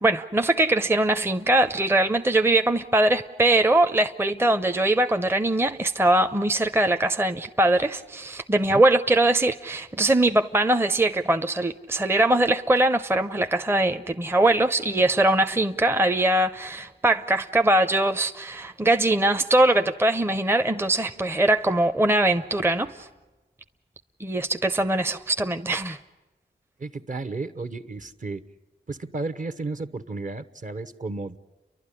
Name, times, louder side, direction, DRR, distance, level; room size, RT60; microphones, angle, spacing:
voice 1, 0.0-23.1 24.2-26.0, right 1 dB, 15° right, 8 dB, 0.6 m, -22 dB
voice 2, 26.8-28.4 28.9-31.4, right 3 dB, 45° right, 12 dB, 0.9 m, -33 dB
30.0 x 12.0 x 9.9 m, 1.2 s
cardioid pair, 60°, 18 cm